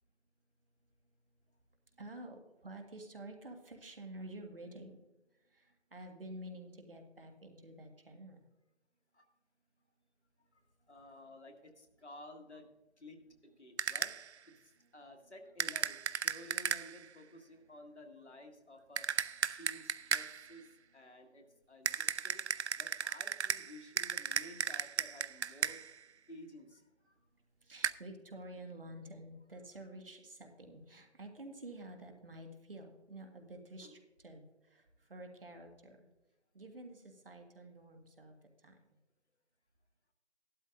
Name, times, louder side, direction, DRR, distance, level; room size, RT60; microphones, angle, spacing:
voice 1, 1.9-5.0 5.3-8.4 12.5-12.6 14.8-14.9 15.2-15.3 17.6-17.7 19.4-19.6 20.6-21.2 21.4-21.6 21.9-22.0 27.3-36.0 36.5-39.0, right 1 dB, 55° right, 4 dB, 1.8 m, -50 dB
voice 2, 10.5-12.7 13.0-14.2 14.5-19.1 19.4-22.4 22.8-25.9 26.3-27.2 33.8-34.0, left 1 dB, 75° left, 4 dB, 1.9 m, -54 dB
sound 1, 13.8-14.3 15.6-17.1 19.0-20.5 21.9-26.0 27.8-27.9, right 7 dB, 75° right, 0.5 m, -36 dB
14.5 x 12.0 x 2.5 m, 1.0 s
figure-of-eight pair, 165°, 34 cm